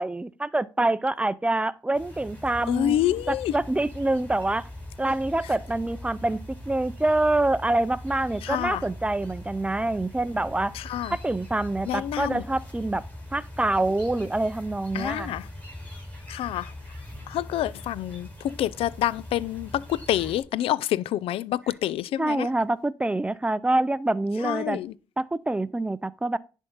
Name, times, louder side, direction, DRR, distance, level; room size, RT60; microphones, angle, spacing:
voice 1, 0.0-3.0 3.3-4.7 5.0-10.8 11.1-13.0 13.3-15.3 22.2-24.8 25.2-26.4, right 2 dB, 10° right, 0.5 m, -26 dB
sound 1, 1.9-20.4, left 1 dB, 15° left, 5.0 m, -41 dB
voice 2, 2.7-3.6 8.4-8.8 10.7-11.2 11.9-12.4 14.9-15.5 16.3-16.7 17.3-22.5 24.4-24.9, left 12 dB, 85° left, 0.4 m, -27 dB
10.5 x 3.6 x 5.4 m
cardioid pair, 75°, 9 cm